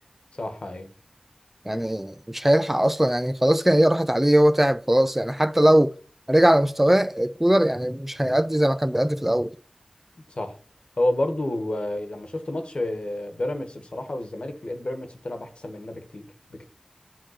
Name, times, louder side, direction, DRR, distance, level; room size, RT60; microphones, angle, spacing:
voice 1, 0.4-0.9 10.3-10.6 11.0-16.7, left 1 dB, 65° left, 1.3 m, -30 dB
voice 2, 1.7-5.9 6.3-9.5, right 1 dB, 10° right, 0.5 m, -20 dB
7.5 x 3.7 x 6.4 m
wide cardioid pair, 55°, 2 cm